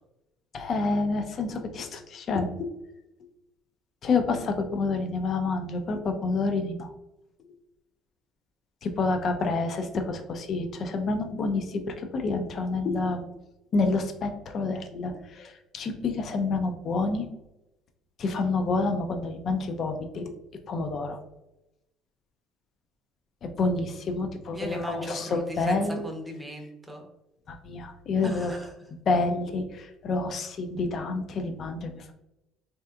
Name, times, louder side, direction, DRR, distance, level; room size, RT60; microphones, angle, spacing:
voice 1, 0.5-2.7 4.0-6.9 8.8-13.2 13.7-17.3 18.2-20.3 20.7-21.2 23.4-26.0 27.5-28.5 29.1-32.1, left 3 dB, 45° left, 6 dB, 0.4 m, -28 dB
voice 2, 24.5-27.1 28.2-28.7, equal, 10° right, 2 dB, 0.6 m, -37 dB
3.2 x 2.7 x 2.3 m, 0.90 s
cardioid pair, 125°, 0 cm